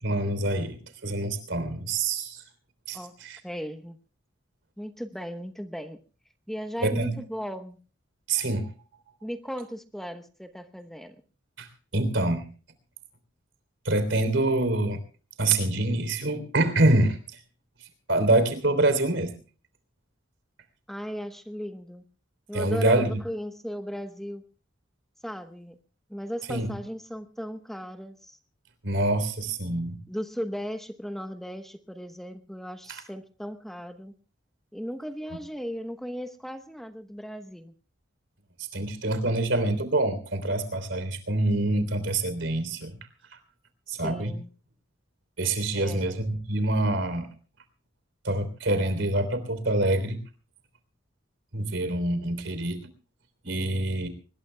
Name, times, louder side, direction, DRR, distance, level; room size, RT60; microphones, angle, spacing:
voice 1, 0.0-2.4 2.9-3.4 6.8-7.2 8.3-8.7 11.6-11.7 11.9-12.5 13.9-15.0 15.4-17.4 17.8-19.3 22.5-23.2 26.5-26.7 28.8-30.0 32.9-33.0 38.6-43.0 43.3-43.4 43.9-44.3 45.4-47.3 48.2-50.2 51.5-52.8 53.4-54.1, right 2 dB, 75° right, 10 dB, 3.4 m, -26 dB
voice 2, 3.4-4.0 4.8-6.0 6.5-7.8 9.2-11.1 20.9-22.0 22.5-24.4 25.2-25.8 26.1-28.4 29.8-34.1 34.7-37.7 43.9-44.5 45.7-46.1, equal, ahead, 7 dB, 1.0 m, -36 dB
24.5 x 20.5 x 2.2 m, 0.38 s
head